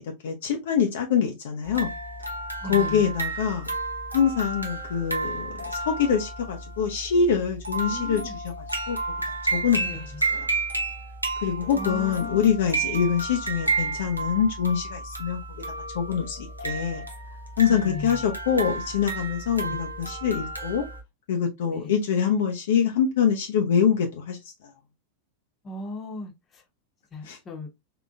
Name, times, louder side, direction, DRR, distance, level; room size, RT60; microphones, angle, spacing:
voice 1, 0.0-1.9 2.6-3.7 4.1-9.0 9.5-9.8 10.3-10.5 11.4-15.4 15.9-17.0 17.6-20.8 21.3-24.5 27.2-27.4, left 7 dB, 55° left, 0.6 m, -25 dB
sound 1, 1.6-21.0, right 3 dB, 85° right, 0.7 m, -32 dB
voice 2, 2.6-3.0 7.8-8.3 9.8-10.0 11.7-12.5 17.7-18.2 19.6-19.8 21.7-22.0 25.6-26.6 27.1-27.7, left 3 dB, 25° left, 1.0 m, -37 dB
3.8 x 2.9 x 2.4 m
figure-of-eight pair, 90°, 0 cm